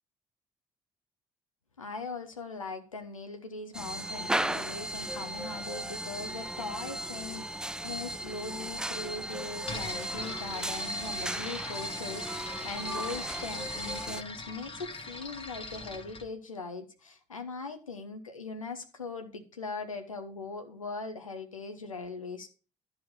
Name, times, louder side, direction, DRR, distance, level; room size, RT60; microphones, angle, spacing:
voice 1, 1.8-22.5, left 3 dB, 85° left, 7 dB, 0.7 m, -40 dB
sound 1, 3.7-14.2, right 1 dB, 5° right, 0.4 m, -36 dB
sound 2, 9.6-16.3, left 3 dB, 30° left, 1.4 m, -42 dB
11.5 x 4.8 x 4.9 m, 0.35 s
figure-of-eight pair, 45°, 17 cm